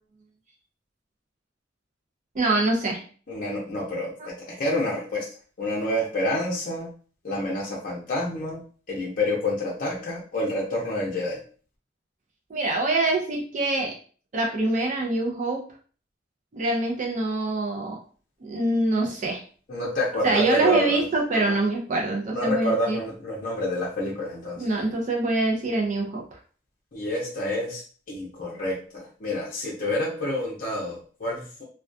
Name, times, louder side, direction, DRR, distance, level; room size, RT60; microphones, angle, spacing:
voice 1, 2.3-3.0 4.2-4.3 12.5-13.9 14.3-15.6 16.5-18.0 18.4-19.4 20.2-23.0 24.6-26.2, right 2 dB, 45° right, 0 dB, 0.5 m, -24 dB
voice 2, 3.3-4.1 4.5-5.3 5.6-6.9 7.2-8.6 8.9-11.4 19.7-21.0 21.3-21.6 22.3-24.6 26.9-27.8 28.1-31.6, left 1 dB, 50° left, -4 dB, 0.6 m, -28 dB
2.3 x 2.2 x 2.5 m, 0.42 s
head